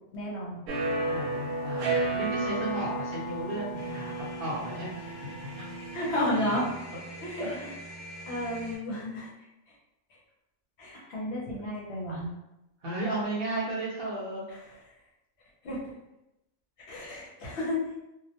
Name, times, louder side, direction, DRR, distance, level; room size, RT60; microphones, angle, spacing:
voice 1, 0.1-0.6 5.9-6.7 7.2-7.8 8.3-9.3 10.8-12.3 15.6-15.8 16.9-17.8, left 1 dB, 60° left, -5 dB, 0.9 m, -32 dB
sound 1, 0.7-6.3, right 2 dB, 80° right, 1.0 m, -32 dB
voice 2, 0.9-4.9 5.2-5.7 7.4-7.6 8.3-8.4 10.9-11.1 12.8-14.6, right 1 dB, 55° right, -6 dB, 0.8 m, -35 dB
sound 2, 3.7-8.8, right 1 dB, 35° right, 0.5 m, -43 dB
2.3 x 2.1 x 2.8 m, 0.93 s
omnidirectional pair, 1.3 m